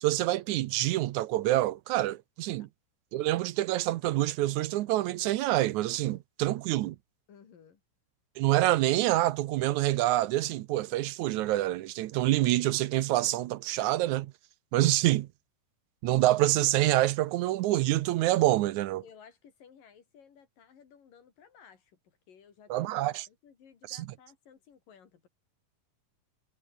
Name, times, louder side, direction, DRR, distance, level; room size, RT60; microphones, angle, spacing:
voice 1, 0.0-2.7 3.1-7.0 8.4-14.3 14.7-15.3 16.0-19.0 22.7-23.3 23.9-24.0, right 15 dB, 75° right, 2.0 m, -26 dB
voice 2, 7.3-7.8 19.0-25.3, left 7 dB, 85° left, 4.8 m, -57 dB
omnidirectional pair, 3.8 m